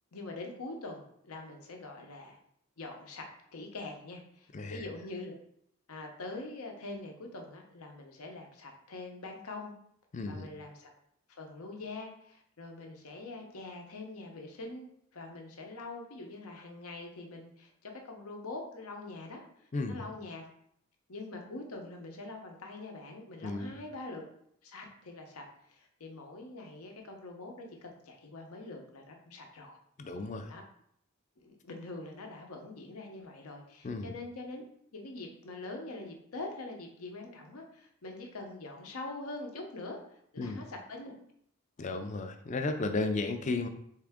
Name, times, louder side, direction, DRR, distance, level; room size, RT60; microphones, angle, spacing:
voice 1, 0.1-2.4 2.8-5.3 5.9-9.7 10.3-10.9 11.3-20.4 21.1-24.2 24.6-25.4 25.7-29.8 30.5-30.6 31.4-34.6 34.9-40.0 40.3-41.1, left 2 dB, 90° left, 2 dB, 0.8 m, -44 dB
voice 2, 10.1-10.5 19.7-20.0 23.4-23.7 30.0-30.5 33.8-34.1 40.4-40.6 41.8-43.7, left 3 dB, 35° left, 7 dB, 0.3 m, -34 dB
3.6 x 3.3 x 3.5 m, 0.70 s
head